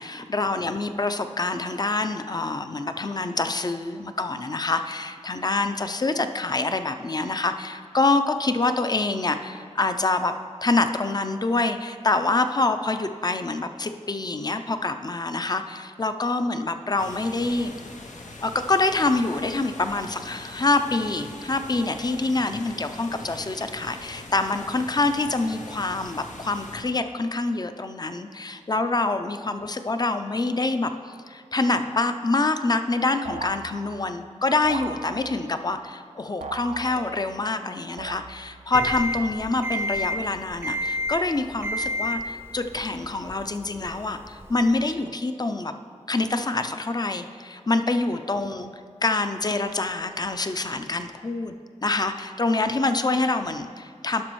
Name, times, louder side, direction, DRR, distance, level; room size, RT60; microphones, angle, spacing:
voice 1, 0.0-10.3 10.6-17.7 18.4-45.7 46.1-48.7 49.0-51.6 51.8-54.2, left 3 dB, 35° left, 8 dB, 0.4 m, -26 dB
sound 1, 17.0-26.8, left 2 dB, 90° left, 0.7 m, -42 dB
sound 2, 33.3-34.2 34.6-35.6 36.4-37.4 38.0-38.7, right 4 dB, 75° right, 0.4 m, -38 dB
sound 3, 38.7-44.8, left 1 dB, 20° right, 0.5 m, -31 dB
11.5 x 6.0 x 3.1 m, 2.2 s
wide cardioid pair, 60°, 12 cm